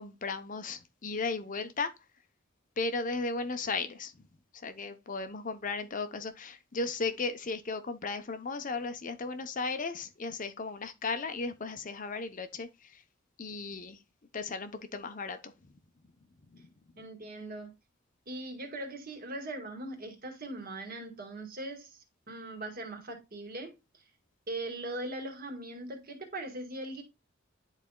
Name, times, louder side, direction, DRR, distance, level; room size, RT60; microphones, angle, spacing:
voice 1, 0.0-1.9 2.8-4.3 4.5-13.0 13.4-14.0 14.3-15.5 16.5-16.7, left 3 dB, 40° left, 0.7 m, -35 dB
voice 2, 17.0-17.7 18.3-23.7 24.5-27.0, right 2 dB, 45° right, 1.9 m, -40 dB
10.5 x 4.1 x 2.2 m
head